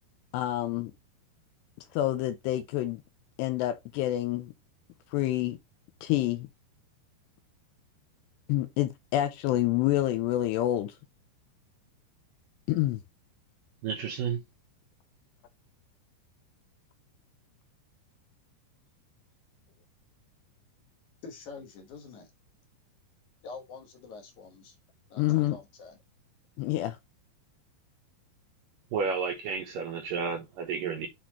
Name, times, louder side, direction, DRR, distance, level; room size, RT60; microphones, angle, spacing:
voice 1, 0.3-0.9 1.9-3.0 3.4-4.5 5.1-5.6 6.0-6.5 8.5-11.0 12.7-13.0 25.2-25.6 26.6-27.0, left 14 dB, 80° left, 2.6 m, -27 dB
voice 2, 13.8-14.4 28.9-31.1, right 6 dB, 75° right, 2.1 m, -31 dB
voice 3, 21.2-22.3 23.4-24.8 25.1-26.0, left 4 dB, 65° left, 2.0 m, -46 dB
8.4 x 4.1 x 2.9 m
omnidirectional pair, 5.2 m